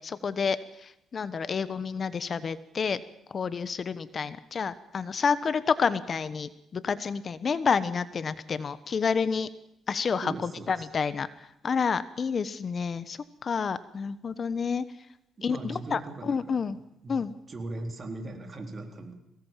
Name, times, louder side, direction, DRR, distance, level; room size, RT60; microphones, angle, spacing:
voice 1, 0.0-3.0 3.3-9.5 9.9-11.3 11.6-14.8 15.4-16.8 17.1-17.3, left 5 dB, 45° left, 15 dB, 1.0 m, -29 dB
voice 2, 10.2-10.9 15.4-16.6 17.0-17.2 17.5-19.1, right 2 dB, 35° right, 5 dB, 3.8 m, -39 dB
22.5 x 18.5 x 7.5 m, 0.79 s
cardioid pair, 90°, 0 cm